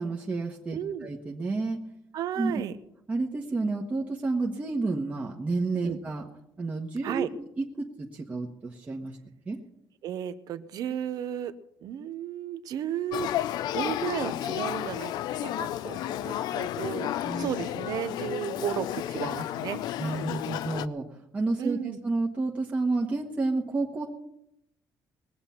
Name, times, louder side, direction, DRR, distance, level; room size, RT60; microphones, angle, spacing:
voice 1, 0.0-1.8 2.4-2.5 3.1-6.2 6.6-9.2 9.5-9.6 16.4-16.6 17.2-17.5 20.0-24.1, right 3 dB, 20° right, -1 dB, 1.2 m, -30 dB
voice 2, 0.7-1.1 2.1-2.7 5.8-6.0 7.0-7.3 10.0-11.5 11.8-13.3 13.7-15.1 15.4-17.1 17.4-19.8 21.6-22.0, right 10 dB, 65° right, 12 dB, 0.9 m, -33 dB
Male speech man speaking / Child speech kid speaking / Conversation, 13.1-20.9, left 13 dB, 80° left, 0.5 m, -32 dB
20.5 x 7.9 x 5.8 m, 0.81 s
cardioid pair, 145°, 7 cm